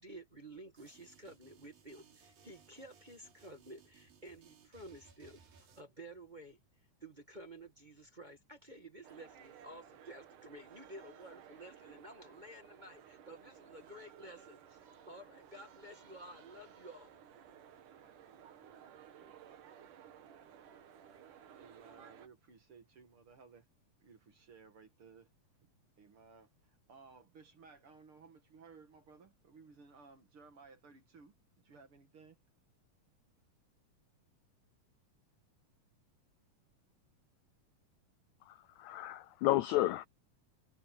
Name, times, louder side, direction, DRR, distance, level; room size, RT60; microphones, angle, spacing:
voice 1, 0.0-6.6 7.0-14.8 15.1-17.2, right 1 dB, 20° right, 1.4 m, -52 dB
sound 1, 0.8-5.8, right 6 dB, 85° right, 5.3 m, -63 dB
sound 2, 9.0-22.3, right 9 dB, 65° right, 3.1 m, -57 dB
voice 2, 21.5-23.7 24.0-25.3 26.0-32.4, right 5 dB, 45° right, 2.4 m, -59 dB
voice 3, 38.5-40.1, left 16 dB, 85° left, 1.7 m, -32 dB
omnidirectional pair, 3.9 m